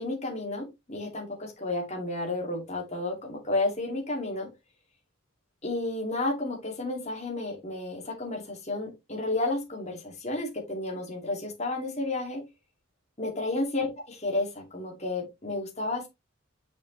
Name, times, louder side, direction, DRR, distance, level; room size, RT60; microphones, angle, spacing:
voice 1, 0.0-4.5 5.6-12.4 13.2-16.1, left 2 dB, 35° left, 1 dB, 2.5 m, -32 dB
6.8 x 5.2 x 3.2 m, 0.22 s
head